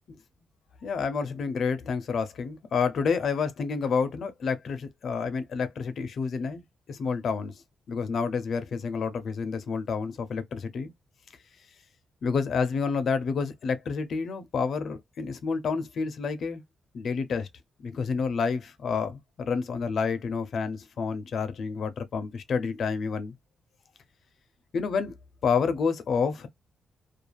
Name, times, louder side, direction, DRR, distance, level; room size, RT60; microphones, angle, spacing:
voice 1, 0.8-6.6 6.9-7.5 7.9-10.9 12.2-16.6 16.9-17.5 17.8-23.3 24.7-25.1 25.4-26.5, left 5 dB, 55° left, 0.5 m, -29 dB
2.3 x 2.3 x 3.1 m
cardioid pair, 145°, 0 cm